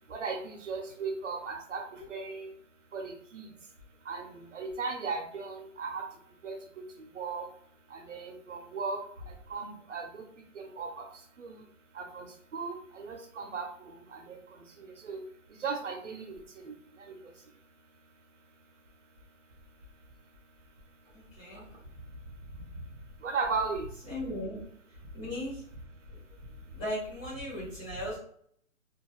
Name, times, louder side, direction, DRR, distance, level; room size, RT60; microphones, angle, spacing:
voice 1, 0.1-1.8 2.1-2.5 2.9-3.5 4.1-6.0 6.4-6.6 7.0-7.5 7.9-9.0 9.5-10.2 10.6-11.0 11.4-11.5 12.0-12.3 12.5-14.4 14.8-15.2 15.6-16.4 16.6-17.2 23.2-23.9, right 4 dB, 65° right, 3 dB, 0.5 m, -36 dB
voice 2, 21.1-21.6 24.1-24.6 25.1-25.6 26.8-28.2, left 1 dB, 5° left, -14 dB, 0.8 m, -36 dB
2.5 x 2.3 x 2.9 m, 0.64 s
hypercardioid pair, 165°, 41 cm